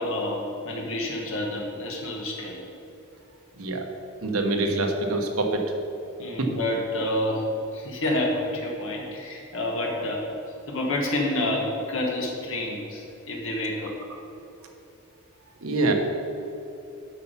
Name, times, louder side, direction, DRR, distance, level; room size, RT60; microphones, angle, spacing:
voice 1, 0.0-2.6 6.2-10.3 10.7-14.0, left 1 dB, 65° left, -2 dB, 1.5 m, -28 dB
voice 2, 4.2-5.6 6.4-6.5 15.6-15.9, right 2 dB, 75° right, 3 dB, 1.1 m, -25 dB
8.5 x 5.8 x 5.7 m, 2.8 s
head